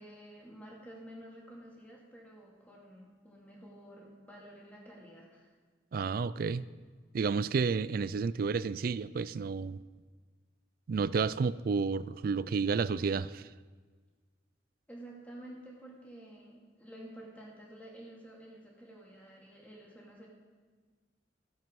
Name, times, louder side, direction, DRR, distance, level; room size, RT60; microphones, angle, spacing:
voice 1, 0.0-5.5 14.9-20.3, right 1 dB, 10° left, -3 dB, 2.5 m, -51 dB
voice 2, 5.9-6.6 7.1-9.8 10.9-13.5, right 5 dB, 50° right, 17 dB, 0.3 m, -31 dB
14.5 x 7.7 x 5.3 m, 1.5 s
head